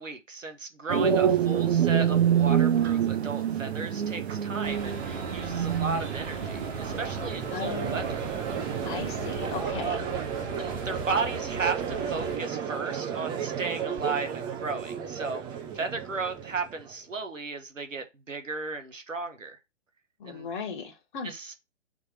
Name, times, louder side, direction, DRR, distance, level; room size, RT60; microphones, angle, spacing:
voice 1, 0.0-8.2 10.6-15.4 15.7-19.6 20.2-20.5 21.2-21.5, right 4 dB, 85° right, 1.5 m, -35 dB
sound 1, 0.9-9.6, right 9 dB, 55° right, 1.0 m, -27 dB
sound 2, 4.6-12.4, right 3 dB, 35° right, 2.1 m, -38 dB
Crowd, 6.8-16.9, right 8 dB, 10° right, 0.5 m, -34 dB
voice 2, 7.5-8.2 8.8-10.1 20.2-21.3, left 5 dB, 40° left, 1.7 m, -36 dB
4.6 x 4.4 x 5.8 m
figure-of-eight pair, 125°, 37 cm